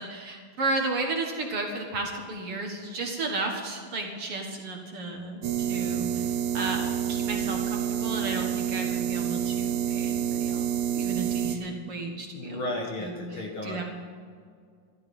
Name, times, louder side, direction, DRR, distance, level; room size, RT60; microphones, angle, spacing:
voice 1, 0.0-12.6 13.0-13.8, right 2 dB, 50° right, 1 dB, 2.3 m, -33 dB
sound 1, 5.4-11.6, right 9 dB, 75° right, 2.1 m, -28 dB
voice 2, 12.3-13.8, left 1 dB, 50° left, 0 dB, 2.0 m, -34 dB
14.5 x 13.5 x 5.5 m, 2.1 s
omnidirectional pair, 3.7 m